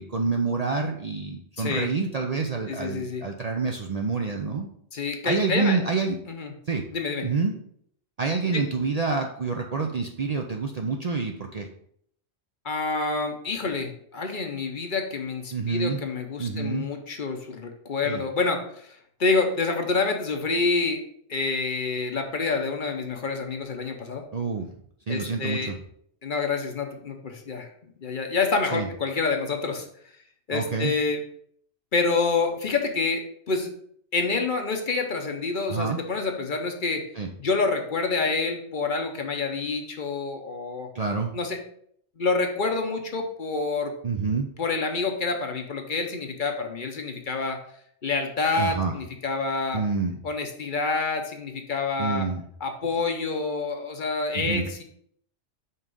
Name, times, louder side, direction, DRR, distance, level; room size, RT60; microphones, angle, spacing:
voice 1, 0.0-4.7 5.2-6.2 6.7-6.8 7.2-7.6 8.2-11.7 15.5-16.1 16.4-16.9 18.0-18.2 24.3-24.7 25.1-25.7 28.7-28.9 30.5-30.9 35.7-36.0 37.2-37.3 40.9-41.3 44.0-44.5 48.6-48.9 49.7-50.2 52.0-52.4 54.3-54.7, right 4 dB, 50° right, 2 dB, 0.5 m, -27 dB
voice 2, 1.6-1.9 2.7-3.2 4.9-5.8 6.3-6.5 6.9-7.2 8.5-8.6 12.6-21.0 21.3-24.2 25.1-25.7 26.2-27.7 28.0-29.9 30.5-31.2 31.9-33.7 34.1-37.0 37.4-40.9 41.3-41.6 42.2-43.9 44.6-47.6 48.0-49.8 50.2-52.3 52.6-54.8, left 4 dB, 50° left, 4 dB, 0.9 m, -27 dB
5.5 x 3.6 x 5.2 m, 0.66 s
omnidirectional pair, 1.2 m